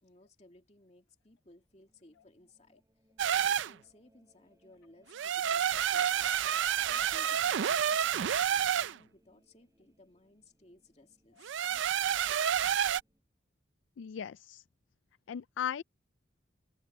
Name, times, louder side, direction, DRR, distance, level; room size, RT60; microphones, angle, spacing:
voice 1, 0.0-2.8 3.3-6.3 6.9-11.8, left 1 dB, 35° left, 2.5 m, -60 dB
sound 1, 1.3-13.2, equal, 15° right, 4.6 m, -71 dB
sound 2, 3.2-3.7 5.1-8.9 11.4-13.0, right 9 dB, 75° right, 0.4 m, -29 dB
voice 2, 14.0-14.6 15.3-15.8, left 9 dB, 75° left, 0.3 m, -37 dB
open air
head